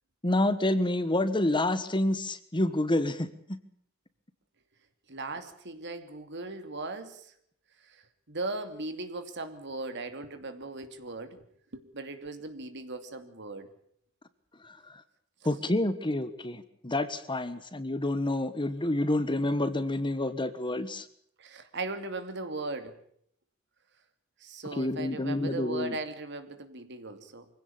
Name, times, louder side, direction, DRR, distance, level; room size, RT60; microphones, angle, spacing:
voice 1, 0.2-3.3 14.6-15.0 15.4-21.1 24.8-26.0, left 1 dB, 25° left, 12 dB, 1.4 m, -28 dB
voice 2, 5.1-7.3 7.8-11.5 11.7-13.7 21.4-23.0 24.4-27.5, right 2 dB, 55° right, 9 dB, 2.6 m, -38 dB
25.0 x 16.5 x 8.8 m, 0.67 s
head